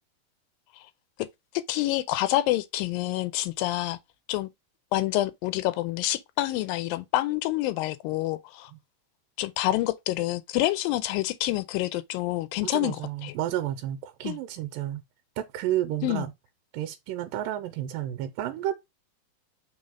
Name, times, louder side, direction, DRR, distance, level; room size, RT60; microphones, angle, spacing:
voice 1, 1.5-4.0 4.3-4.5 4.9-8.7 9.4-13.3 14.2-14.4 16.0-16.3, left 16 dB, 85° left, 2.3 m, -27 dB
voice 2, 12.6-15.0 15.4-16.3 16.7-18.7, right 12 dB, 85° right, 2.4 m, -31 dB
5.6 x 3.6 x 5.1 m
omnidirectional pair, 4.0 m